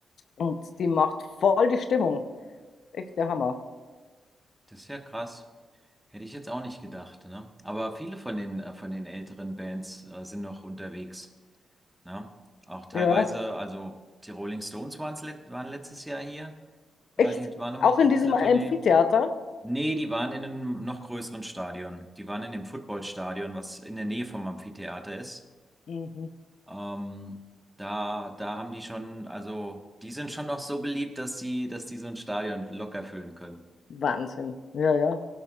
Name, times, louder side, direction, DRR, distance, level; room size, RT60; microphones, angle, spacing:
voice 1, 0.4-2.2 2.9-3.6 12.9-13.3 17.2-17.3 17.8-19.3 25.9-26.3 33.9-35.2, left 5 dB, 65° left, 8 dB, 0.7 m, -24 dB
voice 2, 4.7-5.4 6.1-11.3 12.0-12.3 12.7-14.0 14.2-16.5 17.2-18.8 19.6-25.4 26.7-27.4 27.8-33.6, right 1 dB, 10° right, 5 dB, 1.4 m, -35 dB
17.0 x 11.0 x 2.4 m, 1.3 s
supercardioid pair, 45°, 0 cm